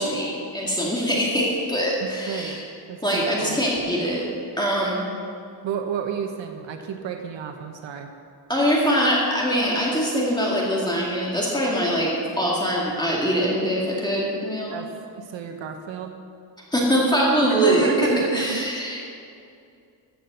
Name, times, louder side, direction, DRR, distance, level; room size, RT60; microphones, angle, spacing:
voice 1, 0.0-2.6 3.0-4.2 4.6-5.0 8.5-12.1 12.4-14.8 16.7-18.1 18.3-19.0, equal, 10° left, -4 dB, 2.0 m, -23 dB
voice 2, 2.0-2.6 2.9-3.6 5.6-8.1 14.7-14.9 15.1-16.2 17.4-18.6, right 6 dB, 90° right, 5 dB, 1.1 m, -30 dB
14.0 x 7.7 x 6.6 m, 2.4 s
wide cardioid pair, 155°, 44 cm